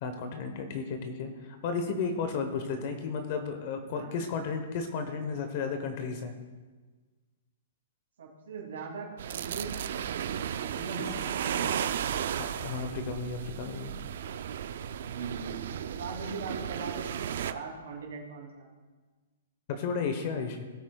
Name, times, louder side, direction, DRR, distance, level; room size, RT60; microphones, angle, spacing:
voice 1, 0.0-6.3 12.4-13.9 19.7-20.6, left 5 dB, 35° left, 7 dB, 0.9 m, -33 dB
voice 2, 3.9-4.3 8.2-10.3 10.5-12.0 14.8-15.6 15.9-18.7, right 4 dB, 85° right, -3 dB, 2.6 m, -41 dB
sound 1, 9.2-17.5, right 9 dB, 50° right, 0.4 m, -34 dB
17.0 x 8.2 x 2.3 m, 1.4 s
hypercardioid pair, 175°, 0 cm